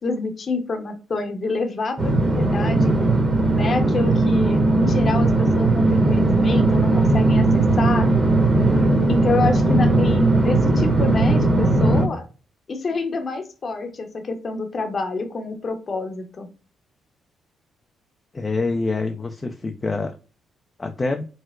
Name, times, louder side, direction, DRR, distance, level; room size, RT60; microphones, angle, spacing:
voice 1, 0.0-2.9 3.5-8.1 9.1-12.2 12.7-16.5, left 3 dB, 40° left, 5 dB, 0.8 m, -27 dB
sound 1, 2.0-12.1, right 2 dB, 20° right, 0.9 m, -18 dB
voice 2, 18.3-20.2 20.8-21.3, left 3 dB, 25° left, 5 dB, 0.4 m, -26 dB
4.2 x 2.1 x 2.3 m, 0.34 s
cardioid pair, 90°, 0 cm